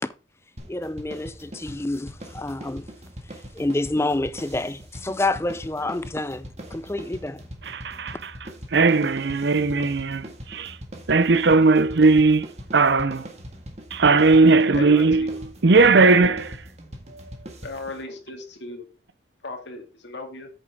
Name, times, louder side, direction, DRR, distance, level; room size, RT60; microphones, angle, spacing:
sound 1, 0.6-18.0, equal, 35° right, 1.7 m, -41 dB
voice 1, 0.7-2.9 3.5-7.4, left 2 dB, 15° left, 0.4 m, -28 dB
voice 2, 7.7-8.3 8.7-10.7 11.1-12.5 12.7-13.2 13.9-15.4 15.6-16.6, right 3 dB, 75° right, 0.7 m, -18 dB
voice 3, 14.7-15.3 17.6-18.9 19.4-20.5, left 3 dB, 85° left, 2.0 m, -36 dB
8.8 x 6.7 x 3.5 m
head